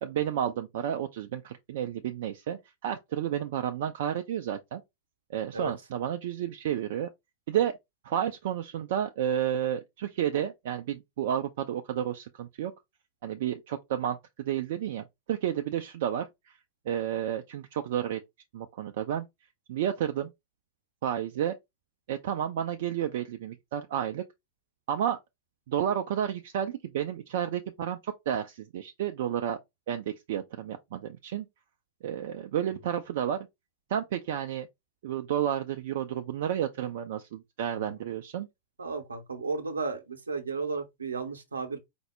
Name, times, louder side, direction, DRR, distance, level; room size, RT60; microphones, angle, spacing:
voice 1, 0.0-4.8 5.3-7.1 7.5-7.8 8.0-12.7 13.2-16.6 16.9-18.2 18.5-19.3 19.7-20.3 21.0-21.5 22.1-24.2 24.9-25.2 25.7-29.6 29.9-31.5 32.0-33.5 33.9-34.7 35.0-38.5, right 10 dB, 55° right, 0.3 m, -31 dB
voice 2, 38.8-41.8, right 4 dB, 75° right, 0.7 m, -34 dB
4.3 x 2.0 x 3.2 m
figure-of-eight pair, 90°, 0 cm